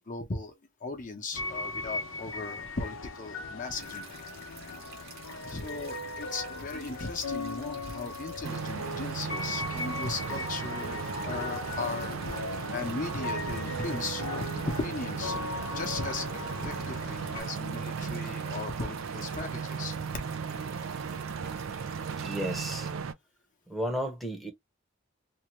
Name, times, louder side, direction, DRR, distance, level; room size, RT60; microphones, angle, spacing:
voice 1, 0.1-0.5 0.8-4.1 5.4-12.2 12.5-14.5 14.8-15.4 15.7-20.0, left 3 dB, 40° left, 0.8 m, -37 dB
sound 1, 1.3-17.4, left 3 dB, 80° left, 0.7 m, -38 dB
sound 2, 3.7-22.9, right 5 dB, 55° right, 1.0 m, -51 dB
sound 3, 8.4-23.1, right 6 dB, 85° right, 0.4 m, -36 dB
voice 2, 22.2-22.9 23.7-24.5, equal, ahead, 0.8 m, -33 dB
2.7 x 2.3 x 3.0 m
head